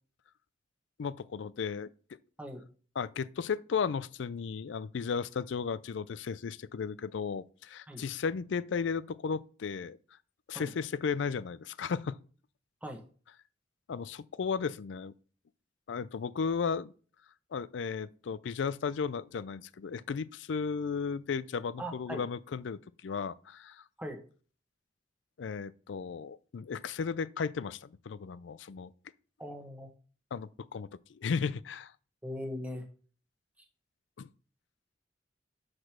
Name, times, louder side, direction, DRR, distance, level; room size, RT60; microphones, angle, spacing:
voice 1, 1.0-1.9 3.0-10.0 10.5-12.2 13.9-15.1 15.9-16.9 17.5-23.8 25.4-28.9 30.3-31.9 34.2-34.3, left 5 dB, 75° left, 0.4 m, -35 dB
voice 2, 21.8-22.2 24.0-24.2 29.4-29.9 32.2-32.8, equal, 10° right, 1.3 m, -39 dB
6.1 x 5.1 x 6.0 m
head